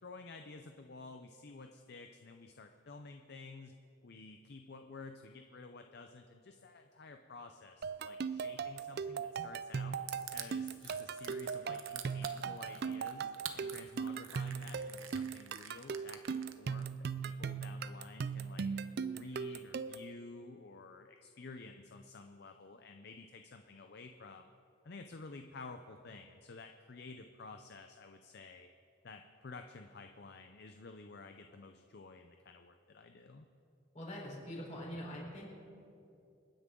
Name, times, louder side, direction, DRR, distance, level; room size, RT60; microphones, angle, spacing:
voice 1, 0.0-3.8 4.0-10.0 10.3-18.7 19.1-24.5 24.8-28.7 29.0-33.5, left 3 dB, 50° left, 6 dB, 0.6 m, -52 dB
sound 1, 7.8-20.1, right 6 dB, 50° right, 0.4 m, -39 dB
Crushing, 10.1-16.8, right 10 dB, 70° right, 0.9 m, -47 dB
voice 2, 33.9-35.6, equal, 35° left, -4 dB, 4.2 m, -44 dB
28.5 x 9.7 x 3.8 m, 2.7 s
head